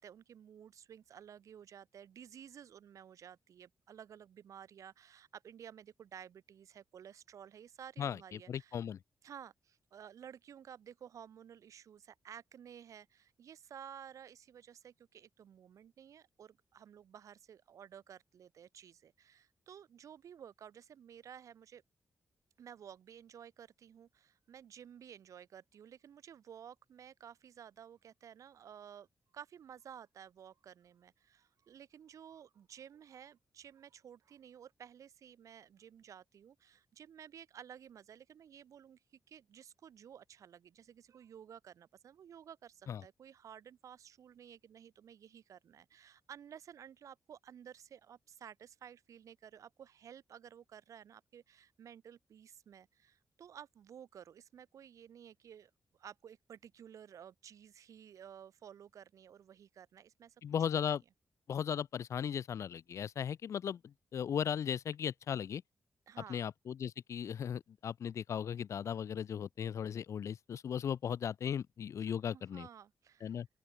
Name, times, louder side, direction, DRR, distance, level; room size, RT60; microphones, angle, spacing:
voice 1, 0.0-8.8 9.2-21.8 22.6-29.1 29.3-60.4 60.7-60.8 66.1-66.4 72.0-73.4, right 9 dB, 85° right, 1.9 m, -54 dB
voice 2, 8.0-9.0 42.9-43.0 60.4-61.0 61.5-65.6 66.3-72.7 73.2-73.5, left 8 dB, 70° left, 0.4 m, -37 dB
open air
cardioid pair, 100°, 5 cm